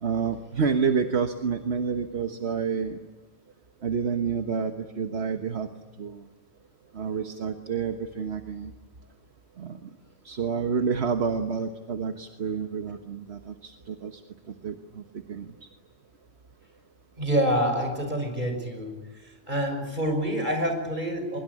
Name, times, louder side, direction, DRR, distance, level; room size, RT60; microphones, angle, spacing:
voice 1, 0.0-3.0 3.8-5.7 6.0-6.2 6.9-8.7 9.6-9.9 10.2-14.2 14.6-15.0 15.3-15.7, right 6 dB, 70° right, 7 dB, 1.6 m, -29 dB
voice 2, 17.1-18.9 19.5-21.4, right 1 dB, 45° right, 5 dB, 6.4 m, -27 dB
23.5 x 22.5 x 9.9 m, 1.2 s
omnidirectional pair, 1.1 m